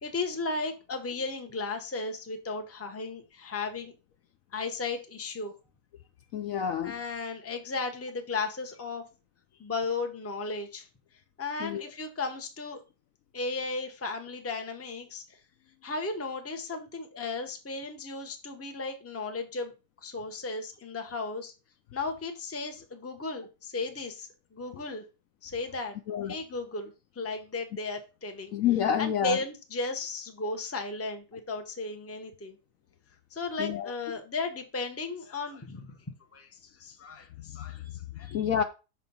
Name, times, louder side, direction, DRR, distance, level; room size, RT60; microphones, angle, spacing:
voice 1, 0.0-3.9 4.5-5.5 6.8-9.0 9.6-10.9 11.4-12.8 13.3-15.4 15.8-19.7 20.0-21.5 21.9-25.0 25.4-26.0 26.3-28.5 29.0-32.6 33.3-35.9 36.3-38.3, left 3 dB, 15° left, 0.6 m, -35 dB
voice 2, 6.3-6.9 11.6-11.8 26.1-26.4 28.5-29.4 33.6-33.9 37.8-37.9 38.3-38.6, left 8 dB, 65° left, 0.8 m, -28 dB
6.2 x 4.3 x 5.3 m
omnidirectional pair, 1.8 m